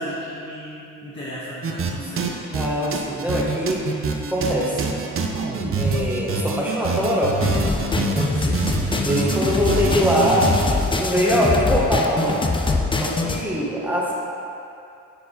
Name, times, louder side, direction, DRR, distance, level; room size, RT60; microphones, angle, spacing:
voice 1, 0.0-2.3 8.2-8.7, equal, 35° left, -10 dB, 1.5 m, -34 dB
sound 1, 1.6-1.9 2.2-10.7, right 4 dB, 40° right, 0.7 m, -25 dB
voice 2, 2.5-4.0 4.3-4.9 5.8-7.6 8.0-8.4 9.0-12.4 13.0-14.1, equal, 5° right, -5 dB, 1.3 m, -23 dB
sound 2, 7.4-13.4, left 3 dB, 15° left, 0.5 m, -23 dB
10.0 x 4.7 x 4.0 m, 2.7 s
cardioid pair, 125°, 32 cm